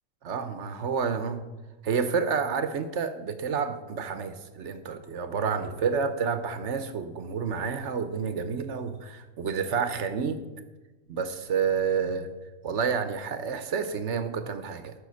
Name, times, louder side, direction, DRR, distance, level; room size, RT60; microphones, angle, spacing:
voice 1, 0.2-1.4 1.8-10.4 11.1-12.3 12.6-14.9, right 6 dB, 50° right, 10 dB, 1.1 m, -29 dB
13.5 x 6.3 x 6.3 m, 1.2 s
omnidirectional pair, 1.7 m